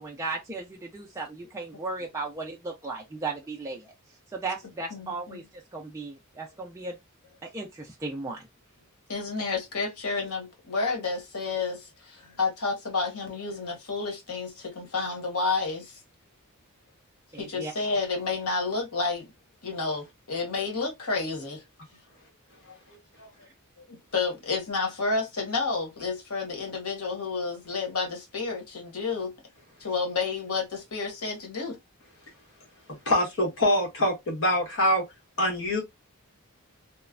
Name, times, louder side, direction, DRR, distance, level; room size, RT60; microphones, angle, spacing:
voice 1, 0.0-3.9 4.3-5.4 5.7-7.0 7.4-8.4 17.3-17.7, right 3 dB, 15° right, 0.4 m, -36 dB
voice 2, 4.9-5.4 9.1-16.0 17.4-19.3 19.6-21.6 22.7-23.3 23.8-29.3 29.8-31.8, left 4 dB, 85° left, 1.1 m, -30 dB
voice 3, 33.1-35.0 35.4-35.8, left 1 dB, 60° left, 1.3 m, -24 dB
3.1 x 2.1 x 2.4 m
head